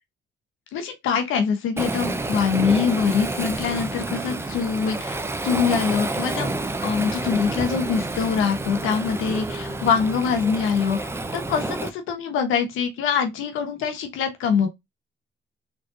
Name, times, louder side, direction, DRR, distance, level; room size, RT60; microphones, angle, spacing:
voice 1, 0.7-6.5 6.8-11.0 11.3-14.7, left 6 dB, 90° left, 1.0 m, -24 dB
Waves surf, 1.8-11.9, right 2 dB, 10° right, 0.6 m, -29 dB
3.8 x 3.2 x 2.5 m
cardioid pair, 90°, 20 cm